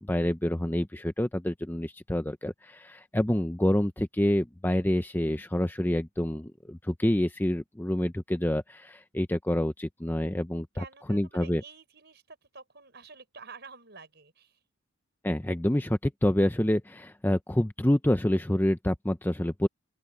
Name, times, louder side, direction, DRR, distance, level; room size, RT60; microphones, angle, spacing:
voice 1, 0.0-11.6 15.2-19.7, left 1 dB, 10° left, 0.6 m, -27 dB
voice 2, 10.7-14.6, right 4 dB, 50° right, 6.1 m, -49 dB
open air
head